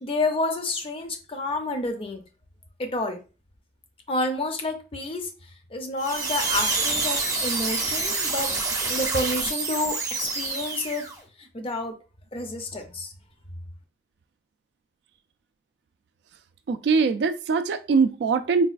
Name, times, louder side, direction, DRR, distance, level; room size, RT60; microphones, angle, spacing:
voice 1, 0.0-2.2 2.8-3.2 4.1-5.3 5.7-8.5 8.9-11.0 11.4-12.0 12.3-13.1, left 2 dB, 30° left, 0.6 m, -29 dB
sound 1, 6.0-11.2, right 3 dB, 20° right, 0.6 m, -27 dB
voice 2, 16.7-18.7, right 5 dB, 65° right, 0.3 m, -22 dB
4.0 x 2.3 x 2.4 m
head